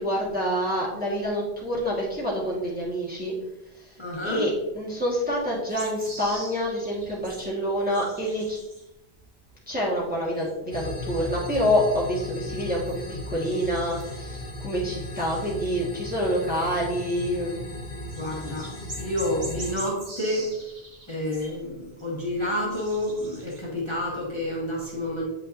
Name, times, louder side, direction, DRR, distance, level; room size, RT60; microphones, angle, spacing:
voice 1, 0.0-3.3 3.8-3.9 4.2-8.6 9.7-17.7, equal, 10° right, -5 dB, 1.3 m, -27 dB
voice 2, 4.0-4.5 18.2-20.5 21.1-25.2, left 1 dB, 25° left, -4 dB, 1.3 m, -29 dB
sound 1, 5.7-8.9 9.2-10.8 11.0-11.2 11.5-13.0 13.4-14.4 14.9-16.0 16.4-16.8 17.8-17.9 18.0-21.6 22.0-24.0, right 1 dB, 50° right, 1.6 m, -43 dB
sound 2, 10.7-19.7, left 2 dB, 45° left, 0.9 m, -36 dB
8.4 x 5.5 x 2.5 m, 0.94 s
omnidirectional pair, 1.1 m